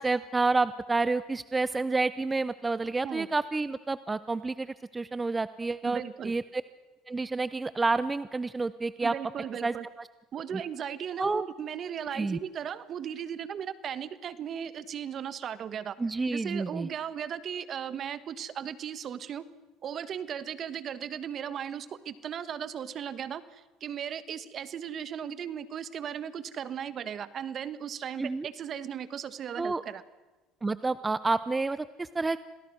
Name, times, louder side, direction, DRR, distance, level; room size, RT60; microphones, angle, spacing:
voice 1, 0.0-6.6 7.1-9.1 9.6-10.1 10.5-10.6 11.2-11.4 12.1-12.4 16.0-16.9 28.2-28.5 29.6-29.8 30.6-32.4, right 3 dB, 20° right, 15 dB, 0.7 m, -29 dB
voice 2, 5.8-6.3 9.0-9.9 10.3-16.0 16.3-19.4 19.8-30.0, right 8 dB, 45° right, 15 dB, 1.3 m, -37 dB
27.5 x 19.0 x 6.2 m, 1.2 s
supercardioid pair, 95°, 0 cm